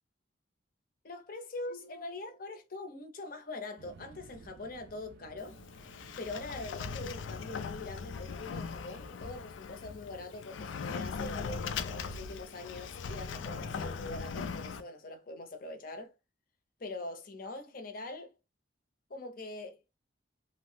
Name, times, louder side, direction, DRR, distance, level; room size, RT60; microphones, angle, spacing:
voice 1, 1.0-5.6 6.2-16.1 16.8-18.3 19.1-19.8, left 2 dB, 50° left, 0.6 m, -43 dB
sound 1, 3.8-9.6, right 4 dB, 60° right, 0.3 m, -57 dB
Sliding door, 5.4-14.8, left 5 dB, 90° left, 0.3 m, -40 dB
2.6 x 2.0 x 3.1 m
head